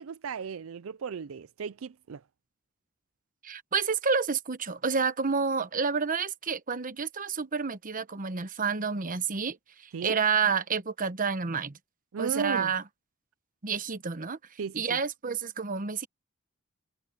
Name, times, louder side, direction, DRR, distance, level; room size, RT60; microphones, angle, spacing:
voice 1, 0.0-2.2 9.9-10.2 12.1-12.7 14.6-15.0, right 6 dB, 70° right, 0.4 m, -35 dB
voice 2, 3.4-11.8 12.2-12.8 13.6-14.4 14.7-16.1, right 5 dB, 40° right, 1.0 m, -29 dB
head